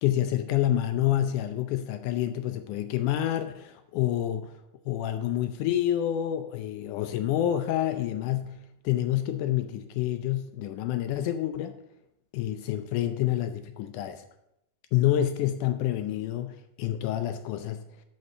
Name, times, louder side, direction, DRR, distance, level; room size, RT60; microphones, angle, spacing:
voice 1, 0.0-4.5 4.9-11.8 12.3-14.2 14.9-17.8, left 12 dB, 80° left, 9 dB, 1.9 m, -28 dB
11.0 x 4.8 x 6.5 m, 0.82 s
omnidirectional pair, 4.0 m